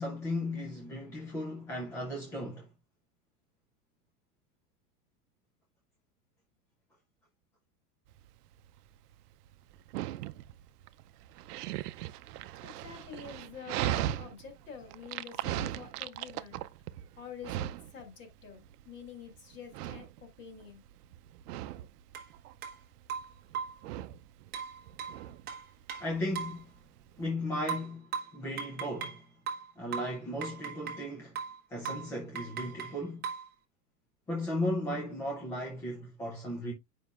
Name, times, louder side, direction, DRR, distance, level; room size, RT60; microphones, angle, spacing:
voice 1, 0.0-2.7 26.0-26.7 27.2-29.2 29.8-31.4 31.7-33.2 34.3-36.7, left 1 dB, 5° left, 0.4 m, -36 dB
Dog, 8.1-27.3, right 13 dB, 80° right, 0.7 m, -39 dB
voice 2, 12.6-16.6 17.2-20.8, left 7 dB, 25° left, 1.9 m, -48 dB
sound 1, 22.1-22.3 22.6-22.8 23.1-23.8 24.5-26.6 27.7-29.2 29.5-31.1 31.4-31.6 31.8-32.1 32.4-33.5, right 6 dB, 20° right, 1.2 m, -38 dB
9.3 x 5.5 x 2.4 m
supercardioid pair, 165°, 46 cm